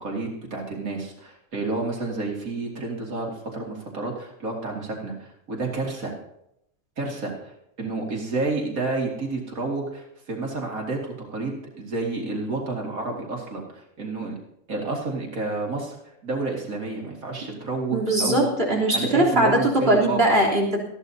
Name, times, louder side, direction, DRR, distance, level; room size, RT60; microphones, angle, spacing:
voice 1, 0.0-6.1 7.0-14.3 14.7-18.5 18.9-20.4, right 3 dB, 85° right, -1 dB, 2.8 m, -30 dB
voice 2, 17.9-20.9, right 1 dB, 45° right, -2 dB, 3.7 m, -20 dB
20.0 x 14.0 x 2.8 m, 0.78 s
omnidirectional pair, 1.4 m